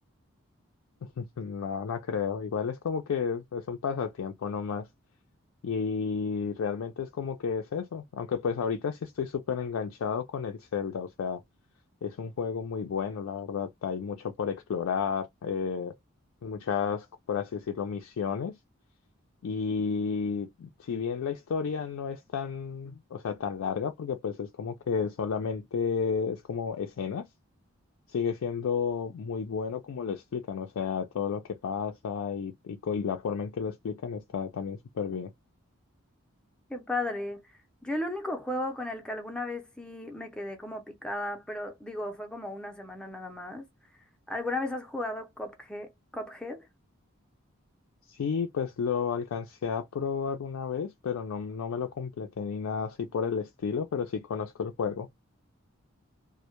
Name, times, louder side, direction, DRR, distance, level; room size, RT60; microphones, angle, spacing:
voice 1, 1.0-4.9 5.6-11.4 12.0-15.9 16.4-18.6 19.4-27.3 28.1-35.3 48.1-55.1, left 6 dB, 75° left, 0.3 m, -32 dB
voice 2, 36.7-37.5 37.8-43.6 44.3-46.7, left 1 dB, 5° left, 0.4 m, -35 dB
2.1 x 2.0 x 2.8 m
head